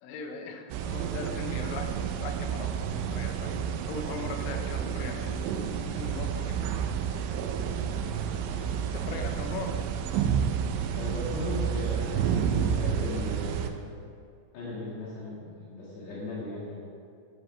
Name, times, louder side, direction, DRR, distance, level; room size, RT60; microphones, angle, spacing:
voice 1, 0.0-3.5 3.9-5.6 6.0-6.7 7.2-7.3 8.9-9.8, left 3 dB, 85° left, 4 dB, 3.7 m, -39 dB
sound 1, 0.7-13.7, right 8 dB, 80° right, 3.0 m, -30 dB
voice 2, 7.6-9.2 10.9-13.9 14.5-16.8, left 2 dB, 65° left, -7 dB, 3.9 m, -38 dB
12.0 x 12.0 x 3.4 m, 2.5 s
omnidirectional pair, 5.6 m